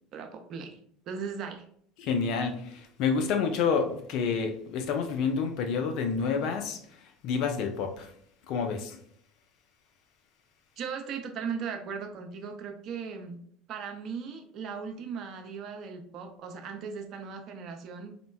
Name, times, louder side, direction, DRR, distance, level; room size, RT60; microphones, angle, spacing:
voice 1, 0.1-0.8 1.1-1.7 10.8-13.4 13.7-18.1, right 6 dB, 50° right, 0.5 m, -38 dB
voice 2, 2.0-8.1 8.5-9.0, left 5 dB, 55° left, 0.4 m, -29 dB
3.8 x 2.1 x 2.2 m
figure-of-eight pair, 70°, 0 cm